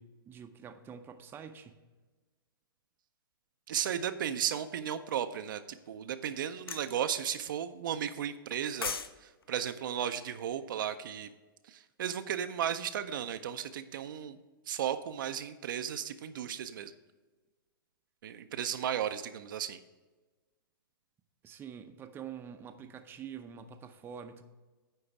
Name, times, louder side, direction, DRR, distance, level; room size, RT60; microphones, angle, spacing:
voice 1, 0.0-1.8 21.4-24.4, right 7 dB, 20° right, 0.6 m, -46 dB
voice 2, 3.7-11.3 11.7-14.4 14.7-16.9 18.2-19.8, right 9 dB, 60° right, 0.5 m, -35 dB
sound 1, 6.7-6.9 8.5-9.1 9.4-9.6, left 6 dB, 85° left, 0.6 m, -36 dB
9.9 x 3.9 x 5.8 m
hypercardioid pair, 120°, 12 cm